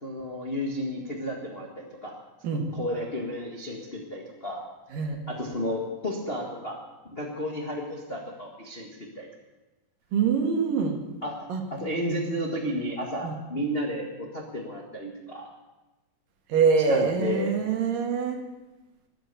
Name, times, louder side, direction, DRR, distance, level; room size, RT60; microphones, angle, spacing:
voice 1, 0.0-2.2 2.5-4.6 5.3-6.8 7.1-9.3 11.2-15.5 16.9-17.5, equal, 40° left, -1 dB, 0.8 m, -32 dB
voice 2, 10.1-11.0 11.5-11.6 13.2-13.3 16.5-18.4, right 5 dB, 70° right, 3 dB, 3.3 m, -24 dB
20.0 x 9.9 x 6.9 m, 1.1 s
omnidirectional pair, 4.3 m